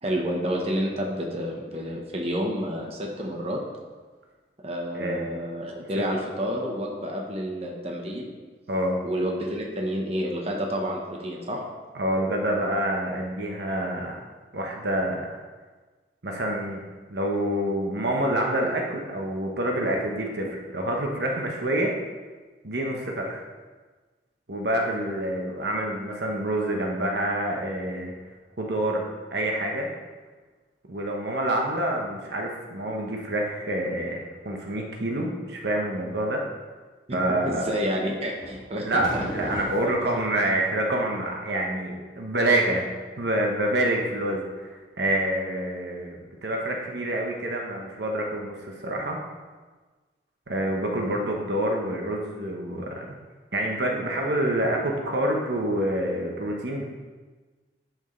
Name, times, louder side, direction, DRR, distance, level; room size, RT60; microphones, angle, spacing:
voice 1, 0.0-3.6 4.6-8.3 9.0-11.6 37.1-37.2 37.4-39.2 39.8-40.2, equal, 35° right, 0 dB, 1.1 m, -29 dB
voice 2, 4.9-5.3 8.7-9.0 11.9-14.2 14.5-15.4 16.2-16.8 17.1-21.9 22.6-23.4 24.5-28.1 28.6-29.0 29.3-29.9 30.9-36.4 37.1-37.7 38.8-42.9 43.2-44.7 45.0-49.2 50.5-53.1 53.5-56.8, right 1 dB, 70° right, 0 dB, 1.1 m, -27 dB
sound 1, 38.3-40.2, equal, 25° left, 1.5 m, -36 dB
11.0 x 6.3 x 3.3 m, 1.3 s
head